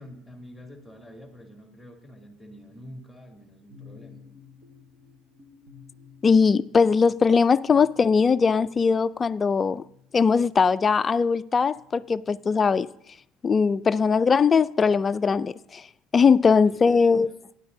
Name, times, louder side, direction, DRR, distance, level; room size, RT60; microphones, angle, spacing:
voice 1, 0.0-4.2 16.4-17.3, equal, 5° right, 2.6 m, -47 dB
sound 1, 3.7-12.9 13.7-15.6, left 5 dB, 55° right, 4.0 m, -55 dB
voice 2, 6.2-9.8 10.1-12.9 13.4-15.8 16.1-17.3, left 5 dB, 25° left, 0.3 m, -20 dB
18.0 x 10.5 x 2.7 m
supercardioid pair, 110°, 0 cm